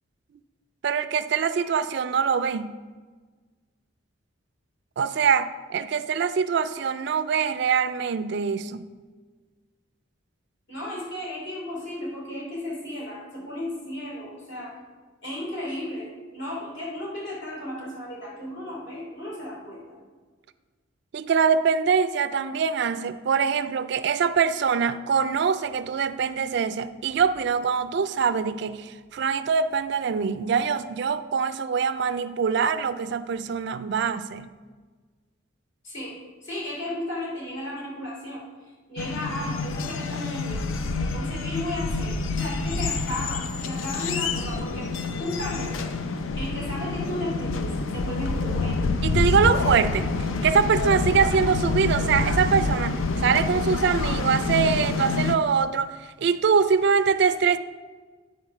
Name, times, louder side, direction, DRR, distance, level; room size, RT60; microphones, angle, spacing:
voice 1, 0.8-2.7 5.0-8.9 21.1-34.5 49.0-50.1 50.4-55.9 56.2-57.6, right 6 dB, 55° right, 13 dB, 0.3 m, -23 dB
voice 2, 10.7-14.8 15.2-20.0 35.8-38.4 38.9-40.6 41.0-48.8, left 1 dB, 60° left, -4 dB, 2.8 m, -34 dB
sound 1, 39.0-55.3, left 3 dB, 85° left, 0.5 m, -27 dB
9.5 x 4.2 x 5.8 m, 1.4 s
head